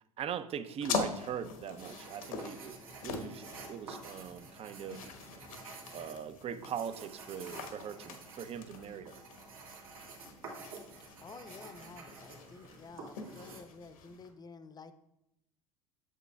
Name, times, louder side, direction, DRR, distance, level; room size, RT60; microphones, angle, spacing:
voice 1, 0.2-5.1 5.9-9.2, right 8 dB, 35° right, 0.5 m, -41 dB
sound 1, 0.8-14.3, left 5 dB, 80° left, 1.1 m, -43 dB
sound 2, 1.8-13.6, right 3 dB, 80° right, 1.9 m, -50 dB
voice 2, 11.2-14.9, left 4 dB, 20° left, 0.7 m, -51 dB
8.2 x 7.4 x 2.3 m
hypercardioid pair, 75°, 18 cm